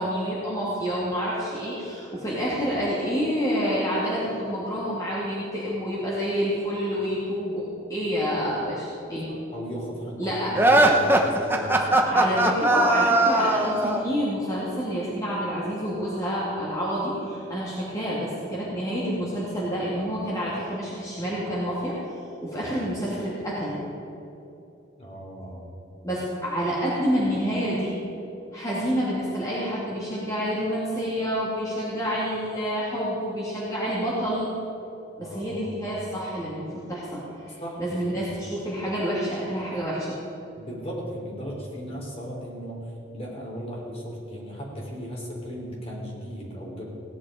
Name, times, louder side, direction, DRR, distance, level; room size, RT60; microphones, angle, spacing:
voice 1, 0.0-9.3 10.2-10.5 11.8-22.0 22.4-23.8 26.0-27.9 28.5-34.5 35.2-40.2, equal, 20° left, -8 dB, 2.5 m, -28 dB
voice 2, 9.2-12.0 22.7-22.8 25.0-25.6 35.2-35.7 37.6-38.2 40.6-42.8 43.1-46.9, equal, 35° left, -3 dB, 3.5 m, -36 dB
sound 1, 10.5-14.1, right 1 dB, 10° right, 1.1 m, -20 dB
17.5 x 10.5 x 5.0 m, 2.9 s
head